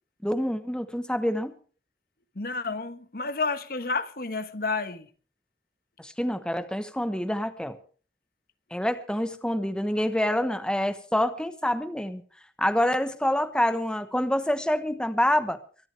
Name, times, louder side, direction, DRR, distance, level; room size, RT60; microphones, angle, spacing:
voice 1, 0.2-1.5 6.0-7.8 8.7-12.2 12.6-15.6, left 1 dB, 5° left, 1.1 m, -26 dB
voice 2, 2.3-5.1, left 3 dB, 55° left, 1.4 m, -30 dB
24.0 x 12.5 x 3.4 m
head